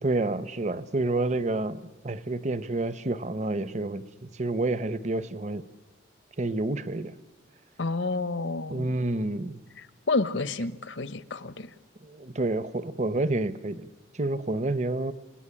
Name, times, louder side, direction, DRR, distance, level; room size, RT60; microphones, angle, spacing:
voice 1, 0.0-5.7 6.4-7.1 8.7-9.6 12.0-13.9 14.1-15.1, right 2 dB, 35° right, 16 dB, 0.8 m, -29 dB
voice 2, 7.8-8.9 10.1-11.7, left 3 dB, 80° left, 15 dB, 1.0 m, -29 dB
28.5 x 19.0 x 10.0 m, 1.3 s
head